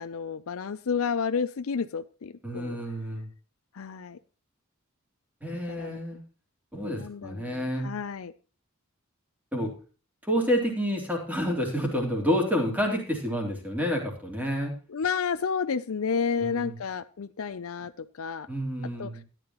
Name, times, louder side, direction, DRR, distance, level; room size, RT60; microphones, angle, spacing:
voice 1, 0.0-2.8 3.7-4.2 5.7-6.0 6.9-8.3 14.9-18.5 19.0-19.2, left 6 dB, 70° left, 14 dB, 0.5 m, -31 dB
voice 2, 2.4-3.3 5.4-6.2 6.7-7.9 9.5-9.7 10.2-14.7 16.4-16.7 18.5-19.2, equal, 10° right, 1 dB, 3.4 m, -29 dB
13.5 x 10.5 x 3.0 m, 0.35 s
head